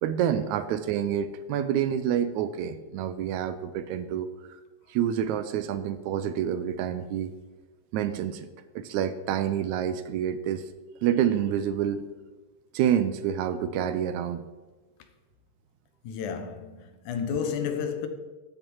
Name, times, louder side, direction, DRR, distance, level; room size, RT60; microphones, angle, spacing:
voice 1, 0.0-4.3 4.9-7.3 7.9-8.5 8.8-10.6 11.0-12.1 12.7-14.4, right 9 dB, 80° right, 1.9 m, -27 dB
voice 2, 16.0-18.1, left 7 dB, 80° left, 2.5 m, -31 dB
12.5 x 9.0 x 4.7 m
omnidirectional pair, 3.6 m